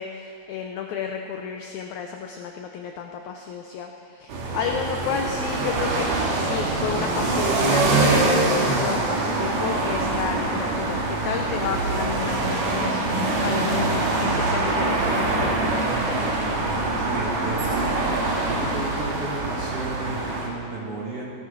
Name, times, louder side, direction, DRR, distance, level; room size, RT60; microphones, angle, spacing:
voice 1, 0.0-15.9, left 6 dB, 80° left, 4 dB, 1.7 m, -32 dB
sound 1, 4.3-20.5, right 2 dB, 65° right, 3.0 m, -24 dB
voice 2, 17.0-18.1 18.4-21.2, right 2 dB, 45° right, -5 dB, 2.5 m, -33 dB
17.0 x 12.5 x 3.8 m, 2.4 s
omnidirectional pair, 4.2 m